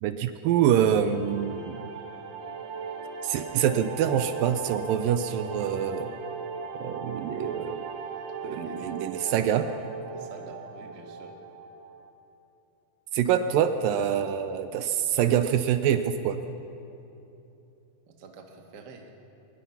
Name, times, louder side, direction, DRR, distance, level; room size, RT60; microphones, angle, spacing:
voice 1, 0.0-1.8 3.2-6.2 6.8-7.9 8.4-9.7 13.1-16.4, right 9 dB, 80° right, 10 dB, 2.3 m, -25 dB
sound 1, 1.0-12.1, right 5 dB, 60° right, 2.0 m, -39 dB
voice 2, 8.4-9.0 10.1-11.4 18.1-19.1, right 4 dB, 40° right, 3 dB, 1.6 m, -47 dB
23.0 x 20.5 x 5.8 m, 2.9 s
omnidirectional pair, 4.1 m